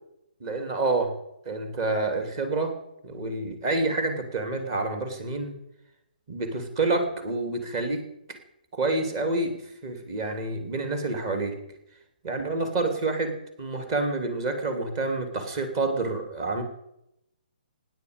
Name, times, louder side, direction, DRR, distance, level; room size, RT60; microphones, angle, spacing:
voice 1, 0.4-1.2 1.4-2.8 3.0-5.5 6.3-8.0 8.7-11.6 12.2-16.6, right 3 dB, 30° right, 6 dB, 3.1 m, -28 dB
26.0 x 10.0 x 5.3 m, 0.85 s
figure-of-eight pair, 130°, 5 cm